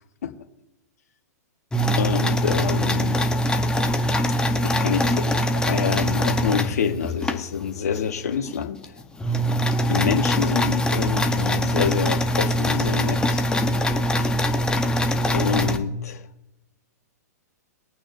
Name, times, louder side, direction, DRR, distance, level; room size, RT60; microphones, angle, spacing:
sound 1, 1.7-7.4 8.0-8.1 8.5-8.6 8.8-15.8, equal, 10° left, 1.0 m, -22 dB
voice 1, 1.9-3.3 4.6-8.9 9.3-9.4 9.9-13.5 15.3-16.2, left 7 dB, 65° left, 6 dB, 1.4 m, -27 dB
22.0 x 8.8 x 2.6 m, 0.91 s
figure-of-eight pair, 110°, 9 cm